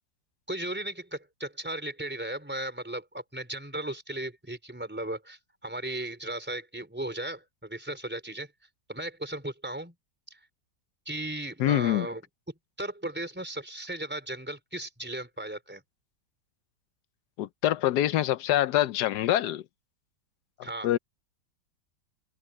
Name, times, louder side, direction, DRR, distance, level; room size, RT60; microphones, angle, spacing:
voice 1, 0.5-8.5 8.9-9.9 10.3-10.4 11.1-12.2 12.8-15.8 20.6-20.9, right 1 dB, 5° right, 4.6 m, -36 dB
voice 2, 11.6-12.1 17.4-19.6 20.8-21.0, left 13 dB, 70° left, 1.2 m, -25 dB
omnidirectional pair, 1.9 m